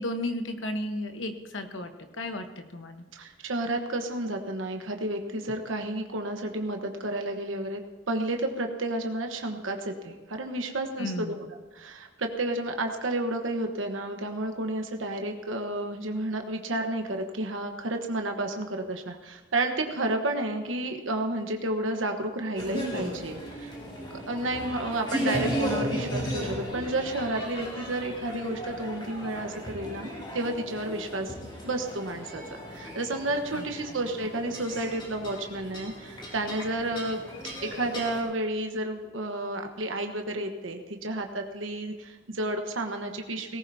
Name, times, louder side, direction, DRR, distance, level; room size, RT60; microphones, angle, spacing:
voice 1, 0.0-1.9 2.2-3.1 11.0-11.4 33.5-34.0, left 1 dB, 75° left, 7 dB, 1.2 m, -34 dB
voice 2, 3.1-11.4 11.7-23.7 24.3-30.1 30.3-31.3 31.6-32.4 32.7-37.2 37.6-43.6, right 1 dB, 85° right, 4 dB, 1.2 m, -31 dB
sound 1, 22.6-38.2, equal, 25° left, 3.8 m, -36 dB
18.5 x 17.5 x 2.8 m, 1.2 s
head